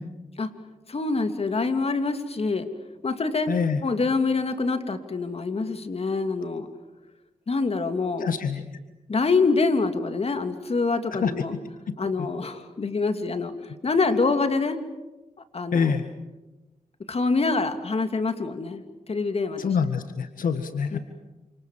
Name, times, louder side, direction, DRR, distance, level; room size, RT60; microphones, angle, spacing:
voice 1, 0.9-2.7 3.0-3.5 3.8-6.7 7.5-8.3 9.1-11.6 12.0-13.5 13.8-14.8 15.5-16.0 17.1-18.8 19.1-19.8 20.9-21.0, left 3 dB, 45° left, 8 dB, 2.8 m, -25 dB
voice 2, 3.5-3.8 8.2-8.6 11.2-11.3 15.7-16.0 19.6-21.0, left 6 dB, 75° left, 9 dB, 1.7 m, -25 dB
29.0 x 27.0 x 7.6 m, 1.1 s
cardioid pair, 70°, 14 cm